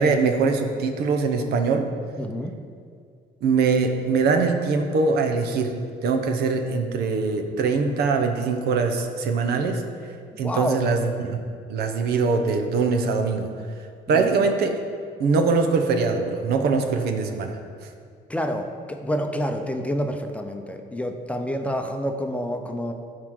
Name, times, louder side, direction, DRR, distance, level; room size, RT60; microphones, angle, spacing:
voice 1, 0.0-1.9 3.4-5.7 6.0-10.1 10.4-11.4 11.7-13.5 14.1-14.8 15.2-17.6, right 4 dB, 70° right, 5 dB, 1.0 m, -22 dB
voice 2, 2.2-2.6 10.3-10.8 14.1-14.3 18.3-22.9, equal, 10° left, 4 dB, 0.7 m, -28 dB
14.0 x 4.8 x 3.8 m, 2.2 s
cardioid pair, 110°, 17 cm